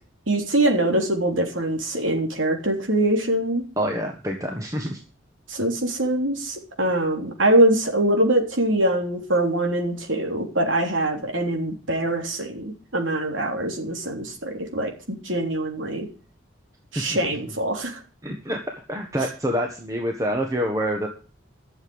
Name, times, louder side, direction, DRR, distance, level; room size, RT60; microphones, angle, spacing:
voice 1, 0.3-3.6 5.5-16.1 16.9-18.0, right 1 dB, 75° right, 2 dB, 3.4 m, -23 dB
voice 2, 3.8-5.0 16.9-17.2 18.2-18.6 18.9-21.1, equal, 15° right, 2 dB, 1.4 m, -26 dB
12.0 x 7.1 x 8.0 m, 0.36 s
head